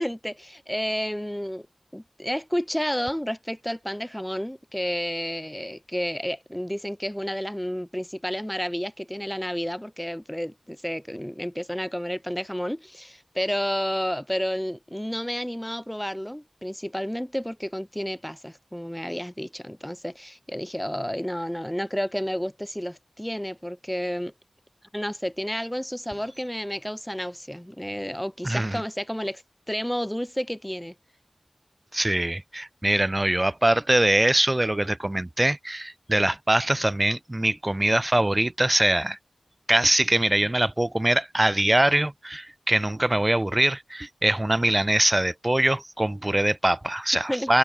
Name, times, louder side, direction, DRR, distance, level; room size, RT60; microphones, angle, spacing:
voice 1, 0.0-1.7 1.9-24.3 24.9-29.4 29.7-30.9 47.3-47.5, equal, 5° left, 2.4 m, -31 dB
voice 2, 28.4-28.8 31.9-39.2 39.7-47.6, right 1 dB, 25° right, 2.5 m, -23 dB
wide cardioid pair, 50°, 0 cm